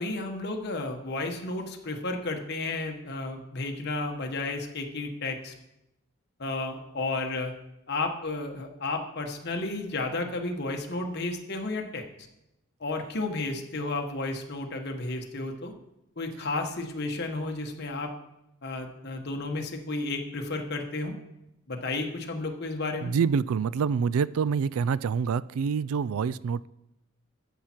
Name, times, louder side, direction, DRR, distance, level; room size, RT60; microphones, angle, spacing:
voice 1, 0.0-5.5 6.4-7.5 7.9-12.0 12.8-15.7 16.2-18.1 18.6-21.1 21.7-23.1, left 2 dB, 50° left, 3 dB, 1.3 m, -32 dB
voice 2, 23.0-26.7, right 6 dB, 80° right, 19 dB, 0.3 m, -26 dB
12.5 x 7.2 x 4.5 m, 0.88 s
head